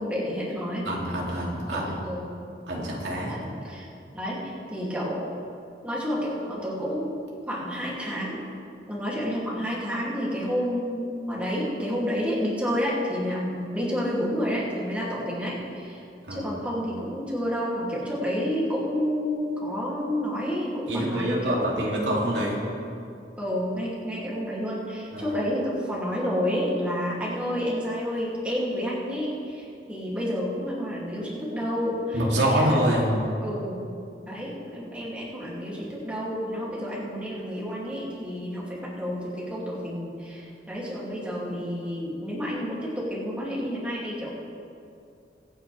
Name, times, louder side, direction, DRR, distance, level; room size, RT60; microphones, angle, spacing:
voice 1, 0.0-0.8 1.7-2.2 3.3-3.9 4.1-5.3 5.8-7.1 7.5-8.4 8.9-16.0 16.3-21.7 23.4-32.8 33.4-33.9 34.3-44.3, equal, 5° right, -7 dB, 2.6 m, -30 dB
voice 2, 0.8-2.0 2.7-3.4 16.3-16.5 20.9-22.6 25.1-25.4 32.1-33.1, right 1 dB, 85° right, -4 dB, 2.6 m, -26 dB
23.5 x 9.0 x 3.4 m, 2.5 s
head